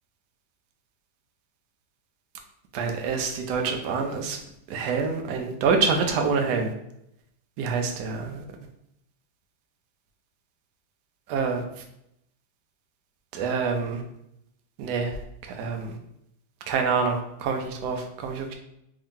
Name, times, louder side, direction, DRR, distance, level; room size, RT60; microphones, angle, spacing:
voice 1, 2.7-4.4 4.7-6.7 7.6-8.4 11.3-11.6 13.3-14.0 14.8-15.1 15.6-15.9 16.7-18.5, right 5 dB, 70° right, 3 dB, 1.0 m, -26 dB
3.6 x 2.7 x 3.6 m, 0.79 s
omnidirectional pair, 2.1 m